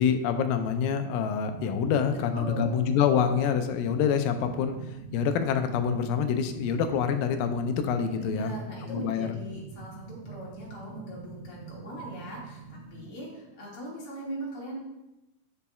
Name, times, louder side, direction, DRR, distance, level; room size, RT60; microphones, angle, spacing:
voice 1, 0.0-8.5 8.8-9.4, left 7 dB, 85° left, 8 dB, 2.3 m, -26 dB
sound 1, 1.5-13.1, right 6 dB, 80° right, 2.2 m, -44 dB
voice 2, 2.3-2.7 8.1-14.8, right 1 dB, 45° left, -5 dB, 2.5 m, -40 dB
8.3 x 6.9 x 2.3 m, 0.95 s
omnidirectional pair, 3.8 m